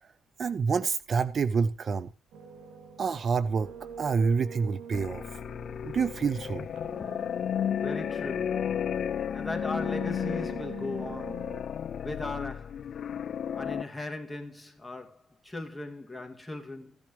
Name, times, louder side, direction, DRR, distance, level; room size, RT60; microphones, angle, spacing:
voice 1, 0.4-2.1 3.0-5.4 5.8-6.7, right 5 dB, 45° right, 0.8 m, -28 dB
sound 1, 2.3-9.0 9.4-11.6, right 7 dB, 85° right, 3.7 m, -46 dB
sound 2, 4.9-13.8, left 8 dB, 60° left, 0.5 m, -33 dB
voice 2, 7.8-8.7 9.3-11.5 12.0-12.9 13.5-17.0, left 2 dB, 5° left, 2.3 m, -38 dB
15.5 x 10.5 x 3.2 m
cardioid pair, 90°, 0 cm